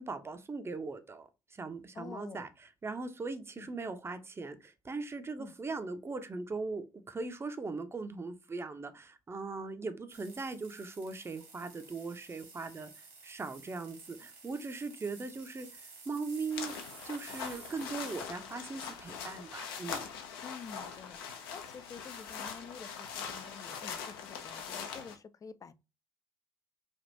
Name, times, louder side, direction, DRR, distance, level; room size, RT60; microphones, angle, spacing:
voice 1, 0.0-12.9 13.2-20.1, right 3 dB, 20° right, 0.5 m, -40 dB
voice 2, 1.9-2.5 3.6-3.7 5.4-5.5 20.4-25.7, left 6 dB, 25° left, 0.3 m, -49 dB
sound 1, 10.1-18.2, right 4 dB, 70° right, 1.5 m, -53 dB
sound 2, 16.5-25.2, left 6 dB, 75° left, 0.6 m, -42 dB
3.4 x 2.4 x 2.6 m
hypercardioid pair, 55°, 12 cm